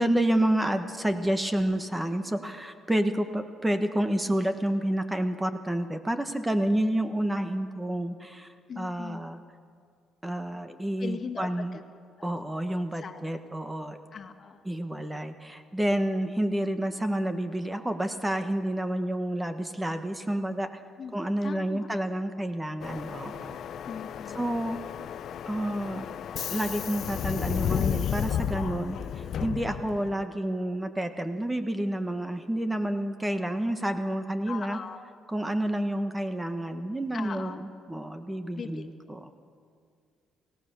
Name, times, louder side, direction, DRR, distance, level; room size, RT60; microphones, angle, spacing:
voice 1, 0.0-8.5 8.8-9.4 10.2-11.8 12.2-14.0 14.6-20.7 21.1-23.6 24.3-24.8 25.5-26.1 26.5-34.8 35.3-39.4, right 1 dB, 10° right, 8 dB, 1.3 m, -29 dB
voice 2, 8.7-9.2 11.0-11.8 12.2-12.3 13.0-13.2 14.1-14.6 21.0-21.1 21.4-21.9 23.8-24.4 34.5-35.0 37.1-37.6 38.6-38.9, left 6 dB, 45° left, 4 dB, 1.8 m, -39 dB
Subway metro underground, 22.8-30.2, left 9 dB, 60° left, 0.6 m, -33 dB
29.0 x 16.5 x 6.9 m, 2.2 s
cardioid pair, 100°, 0 cm